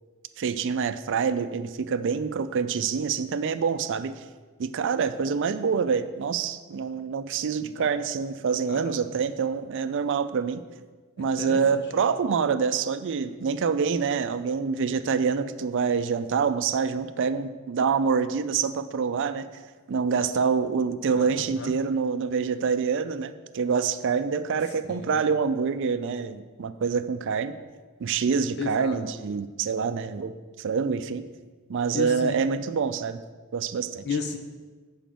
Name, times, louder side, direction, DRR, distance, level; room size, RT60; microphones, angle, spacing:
voice 1, 0.4-4.2 4.6-10.6 11.2-19.5 19.9-27.6 28.0-30.3 30.6-31.2 31.7-33.2 33.5-34.1, right 6 dB, 55° right, 12 dB, 0.4 m, -26 dB
voice 2, 8.7-9.0 11.2-11.8 21.1-21.3 21.6-21.7 24.9-25.1 28.6-29.0 31.9-32.4 34.0-34.4, left 4 dB, 50° left, 5 dB, 0.9 m, -33 dB
7.5 x 5.0 x 6.8 m, 1.4 s
head